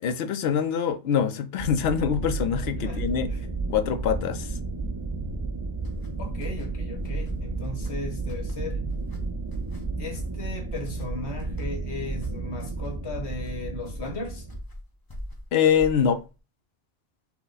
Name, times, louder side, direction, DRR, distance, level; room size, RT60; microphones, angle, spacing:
voice 1, 0.0-3.3 3.7-4.6 15.5-16.2, left 8 dB, 70° left, 0.8 m, -24 dB
sound 1, 1.6-14.6, right 3 dB, 25° right, 0.6 m, -32 dB
sound 2, 5.8-16.4, equal, 20° left, 0.8 m, -43 dB
voice 2, 6.2-8.8 10.0-14.5, left 3 dB, 90° left, 1.5 m, -36 dB
6.0 x 2.2 x 3.9 m
omnidirectional pair, 1.1 m